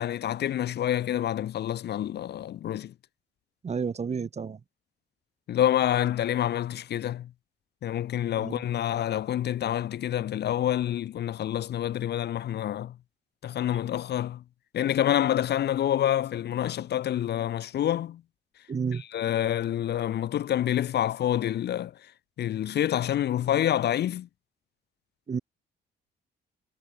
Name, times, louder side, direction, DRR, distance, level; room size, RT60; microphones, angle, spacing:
voice 1, 0.0-2.9 5.5-7.3 7.8-12.9 13.4-14.4 14.7-18.2 19.1-21.9 22.4-24.3, left 11 dB, 55° left, 0.6 m, -27 dB
voice 2, 3.6-4.6 8.3-8.6 18.7-19.0 25.3-25.4, right 6 dB, 35° right, 1.2 m, -31 dB
cardioid pair, 90°, 20 cm